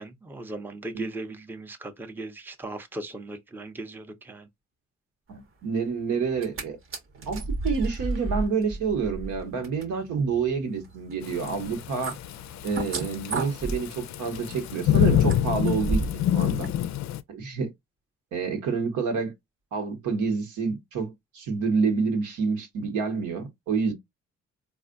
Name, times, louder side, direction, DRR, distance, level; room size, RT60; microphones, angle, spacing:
voice 1, 0.0-4.5, right 2 dB, 5° right, 0.6 m, -38 dB
voice 2, 5.3-6.8 7.3-12.1 12.6-16.0 16.3-16.7 17.3-17.7 18.3-19.3 19.7-23.9, right 5 dB, 80° right, 1.2 m, -28 dB
sound 1, 6.2-6.6 6.9-16.3 16.6-16.7, right 3 dB, 45° right, 0.9 m, -33 dB
Thunderstorm / Rain, 11.2-17.2, left 11 dB, 65° left, 0.4 m, -26 dB
4.2 x 2.4 x 2.5 m
cardioid pair, 90°, 30 cm